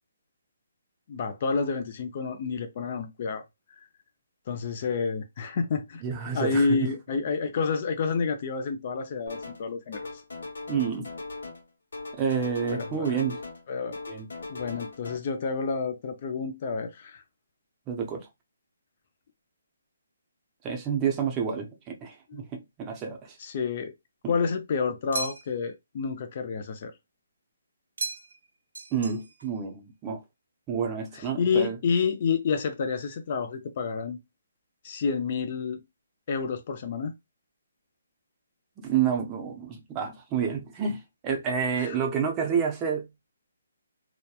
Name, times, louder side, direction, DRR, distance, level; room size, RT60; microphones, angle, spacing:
voice 1, 1.1-3.4 3.8-3.9 4.5-6.0 6.3-10.2 12.7-13.2 13.7-14.0 14.5-17.2 22.3-22.4 23.4-23.9 24.3-26.9 31.1-34.2 34.8-35.8 36.3-37.1 41.8-42.0, left 5 dB, 35° left, 0.4 m, -29 dB
voice 2, 6.0-6.9 10.7-11.1 12.1-13.4 14.1-14.3 17.9-18.3 20.6-23.4 24.2-24.3 28.9-30.2 30.7-31.8 38.8-43.1, right 7 dB, 15° right, 0.5 m, -29 dB
sound 1, 9.3-9.7 9.9-11.7 11.9-13.7 13.9-15.2, left 3 dB, 80° left, 1.1 m, -39 dB
sound 2, 25.1-25.7 28.0-28.5 28.7-29.5, right 3 dB, 90° right, 0.5 m, -36 dB
2.8 x 2.1 x 2.3 m
hypercardioid pair, 165°, 0 cm